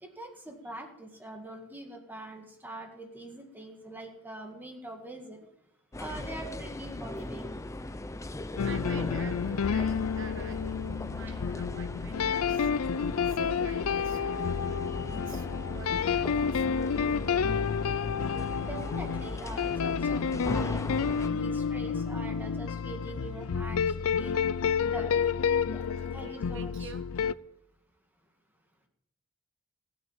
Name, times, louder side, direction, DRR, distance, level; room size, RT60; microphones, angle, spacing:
voice 1, 0.0-5.4 6.0-7.6 18.6-24.4 24.8-25.1 25.7-26.9, right 1 dB, 10° right, 2 dB, 2.0 m, -43 dB
sound 1, 5.9-21.3, left 1 dB, 15° left, 0.5 m, -39 dB
sound 2, 8.6-27.3, left 6 dB, 80° left, 0.5 m, -30 dB
voice 2, 8.6-16.8 25.9-27.0, right 5 dB, 60° right, 9 dB, 1.2 m, -48 dB
15.0 x 8.8 x 7.3 m, 0.78 s
head